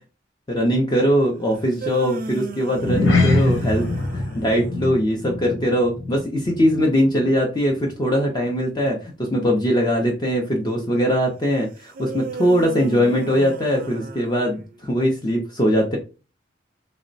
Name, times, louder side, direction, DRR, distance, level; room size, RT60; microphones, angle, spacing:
voice 1, 0.5-16.0, equal, 20° left, 0 dB, 0.4 m, -21 dB
sound 1, 1.5-4.8 11.9-14.9, right 3 dB, 50° right, 0.4 m, -35 dB
sound 2, 2.7-7.4 7.6-7.9 8.4-8.5, left 2 dB, 70° left, 0.7 m, -23 dB
3.0 x 2.0 x 2.5 m, 0.32 s
head